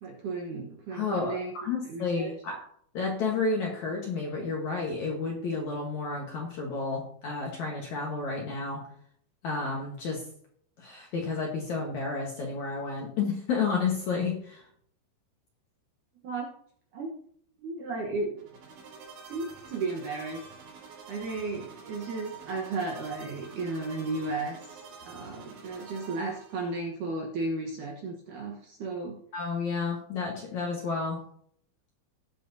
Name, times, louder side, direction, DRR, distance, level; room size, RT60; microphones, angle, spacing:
voice 1, 0.0-2.3 16.2-16.5 16.9-17.1 17.6-18.5 19.3-20.4 21.1-29.2, right 3 dB, 65° right, 0 dB, 2.1 m, -34 dB
voice 2, 0.9-1.3 1.6-2.6 2.9-8.8 9.4-10.2 10.8-14.6 29.3-31.2, left 4 dB, 60° left, -1 dB, 2.0 m, -31 dB
sound 1, 18.4-26.9, right 5 dB, 90° right, 5.2 m, -48 dB
18.5 x 7.5 x 2.7 m, 0.63 s
omnidirectional pair, 5.0 m